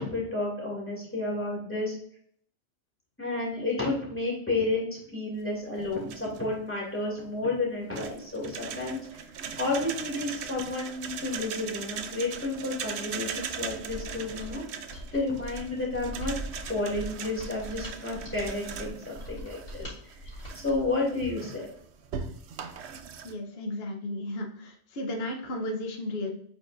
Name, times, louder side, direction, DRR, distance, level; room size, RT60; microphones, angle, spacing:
voice 1, 0.0-1.9 3.2-9.0 9.6-16.4 16.7-19.9 20.5-21.7, left 2 dB, 10° left, -4 dB, 2.7 m, -31 dB
sound 1, 5.8-6.6 8.0-23.3, right 6 dB, 75° right, 0.9 m, -39 dB
Mechanisms, 13.8-21.0, equal, 80° left, 3.1 m, -43 dB
voice 2, 23.2-26.3, left 1 dB, 65° left, 3 dB, 1.2 m, -34 dB
8.3 x 4.7 x 2.6 m, 0.63 s
omnidirectional pair, 1.2 m